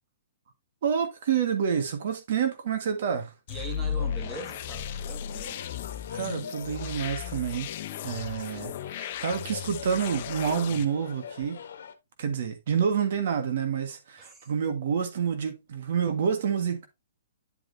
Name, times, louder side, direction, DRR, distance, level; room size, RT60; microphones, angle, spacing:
voice 1, 0.8-3.3 6.1-7.7 8.0-11.6 12.2-16.9, right 7 dB, 60° right, 1.5 m, -28 dB
Multi-Resampled Reese, 3.5-10.8, left 9 dB, 45° left, 0.8 m, -35 dB
voice 2, 3.5-5.6 14.2-14.5, right 3 dB, 15° right, 2.0 m, -41 dB
sound 1, 3.9-11.9, left 7 dB, 70° left, 1.2 m, -44 dB
9.9 x 5.0 x 2.7 m
hypercardioid pair, 150°, 0 cm